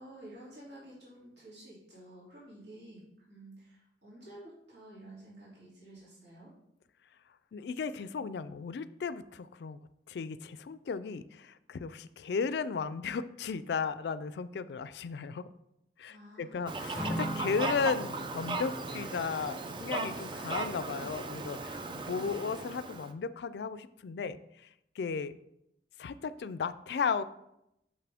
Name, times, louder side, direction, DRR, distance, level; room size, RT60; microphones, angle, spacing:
voice 1, 0.0-3.0 3.3-6.5 16.1-17.0, right 1 dB, 70° right, -8 dB, 2.9 m, -51 dB
voice 2, 7.5-9.8 10.1-15.4 16.0-24.4 25.0-25.4 26.0-27.2, left 5 dB, 65° left, 15 dB, 0.3 m, -35 dB
Fowl, 16.7-23.1, right 3 dB, 25° right, 0.4 m, -37 dB
Acoustic guitar / Strum, 16.9-21.4, equal, ahead, 0.8 m, -42 dB
6.5 x 5.8 x 3.5 m, 0.81 s
head